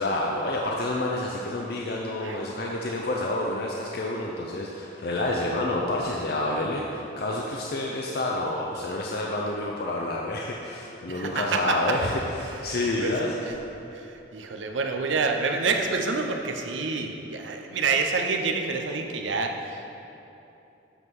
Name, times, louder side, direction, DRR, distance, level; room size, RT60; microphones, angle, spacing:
voice 1, 0.0-13.3, left 2 dB, 55° left, -2 dB, 0.5 m, -28 dB
voice 2, 11.1-11.8 13.0-13.1 13.5-13.6 13.9-19.9, right 4 dB, 85° right, 4 dB, 0.6 m, -27 dB
8.0 x 3.7 x 6.0 m, 2.9 s
head